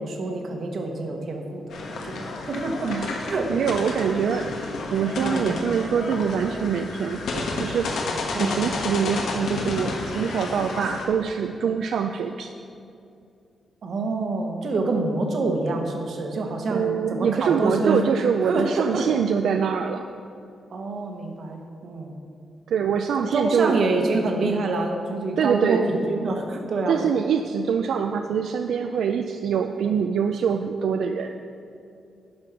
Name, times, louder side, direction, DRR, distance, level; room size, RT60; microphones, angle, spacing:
voice 1, 0.0-2.9 3.3-3.7 5.2-5.6 8.3-8.7 13.8-18.0 18.4-19.1 20.7-22.1 23.2-27.0, right 3 dB, 50° right, 3 dB, 1.0 m, -26 dB
sound 1, 1.7-11.0, left 3 dB, 80° left, 1.2 m, -31 dB
voice 2, 2.8-3.1 3.5-4.5 4.9-7.9 8.3-12.5 16.7-20.1 22.7-23.8 25.4-25.8 26.9-31.3, right 7 dB, 75° right, 6 dB, 0.3 m, -24 dB
10.5 x 5.3 x 5.9 m, 2.5 s
wide cardioid pair, 170°, 0 cm